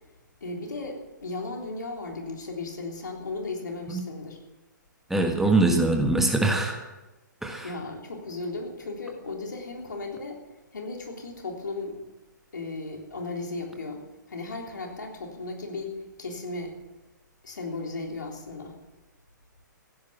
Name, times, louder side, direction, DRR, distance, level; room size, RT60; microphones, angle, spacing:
voice 1, 0.4-4.4 7.6-10.4 10.7-12.0 12.5-16.7 17.4-18.8, left 3 dB, 70° left, 1 dB, 3.5 m, -36 dB
voice 2, 5.1-6.8 7.4-7.7, right 2 dB, 5° right, 2 dB, 1.6 m, -23 dB
15.5 x 10.5 x 7.1 m, 1.1 s
figure-of-eight pair, 120°, 10 cm